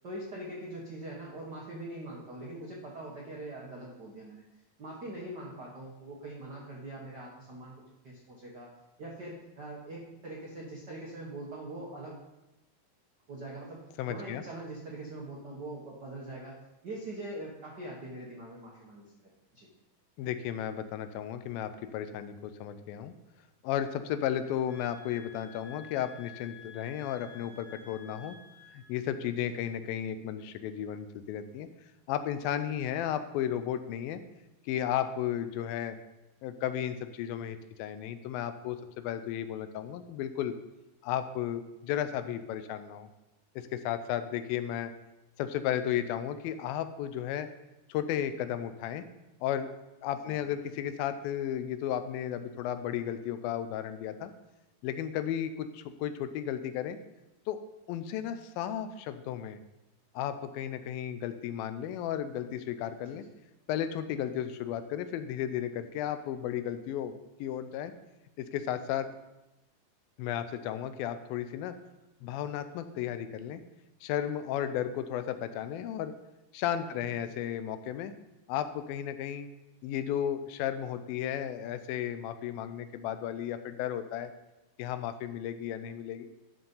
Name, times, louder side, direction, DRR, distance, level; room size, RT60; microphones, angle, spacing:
voice 1, 0.0-4.4 4.8-7.7 8.0-8.7 9.0-12.2 13.3-13.8 14.1-16.5 16.8-19.0 19.5-19.7 29.4-29.5 50.3-50.4 63.0-63.2 77.0-77.1, right 1 dB, 70° right, -3 dB, 0.9 m, -42 dB
voice 2, 14.0-14.4 20.2-23.1 23.6-28.4 28.7-31.7 32.1-34.2 34.6-36.0 36.4-40.5 41.0-43.1 43.6-44.9 45.4-47.5 47.9-49.0 49.4-49.7 50.0-54.3 54.8-57.0 57.5-57.6 57.9-59.6 60.2-63.3 63.7-67.1 67.4-67.9 68.4-69.1 70.2-71.8 72.2-73.6 74.0-76.1 76.5-78.1 78.5-79.5 79.8-84.3 84.8-86.3, left 10 dB, 85° left, 11 dB, 2.4 m, -34 dB
sound 1, 24.7-29.0, left 6 dB, 70° left, 2.5 m, -52 dB
11.5 x 5.4 x 5.4 m, 0.96 s
omnidirectional pair, 4.2 m